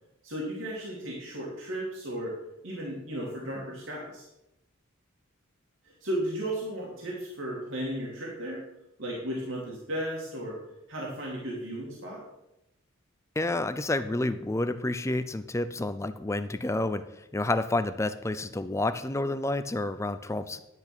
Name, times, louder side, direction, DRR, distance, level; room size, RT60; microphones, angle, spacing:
voice 1, 0.2-2.3 2.6-4.3 5.8-8.6 9.0-10.6 10.9-12.2, right 1 dB, 65° right, -3 dB, 2.7 m, -35 dB
voice 2, 13.4-20.6, left 2 dB, 15° left, 11 dB, 0.5 m, -29 dB
11.0 x 8.2 x 6.1 m, 0.88 s
head